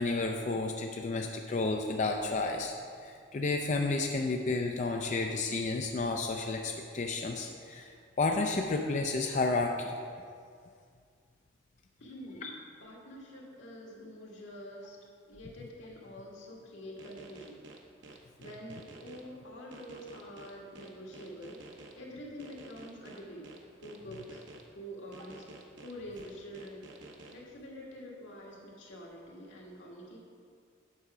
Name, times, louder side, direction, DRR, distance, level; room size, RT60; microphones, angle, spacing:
voice 1, 0.0-2.7 3.0-10.0 12.4-12.5, left 3 dB, 40° left, 2 dB, 0.4 m, -31 dB
voice 2, 12.0-12.5 12.8-15.0 15.3-17.6 18.4-24.4 24.8-25.5 25.8-26.9 27.3-30.2, equal, 85° left, -3 dB, 1.7 m, -46 dB
sound 1, 17.0-19.2 19.7-21.9 22.4-24.6 25.1-27.3, right 3 dB, 85° right, 0.8 m, -51 dB
8.3 x 5.7 x 4.9 m, 2.2 s
head